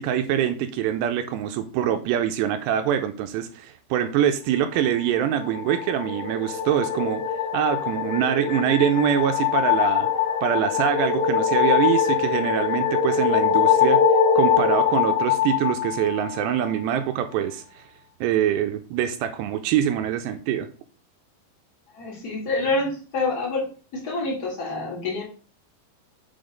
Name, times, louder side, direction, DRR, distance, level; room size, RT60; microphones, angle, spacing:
voice 1, 0.0-7.2 7.5-10.1 10.4-14.0 14.4-17.8 18.2-20.7, right 10 dB, 80° right, 8 dB, 2.5 m, -24 dB
sound 1, 5.3-16.7, left 7 dB, 80° left, 3.2 m, -23 dB
voice 2, 21.9-25.2, left 3 dB, 30° left, -3 dB, 1.8 m, -27 dB
7.0 x 3.8 x 5.0 m, 0.38 s
omnidirectional pair, 5.2 m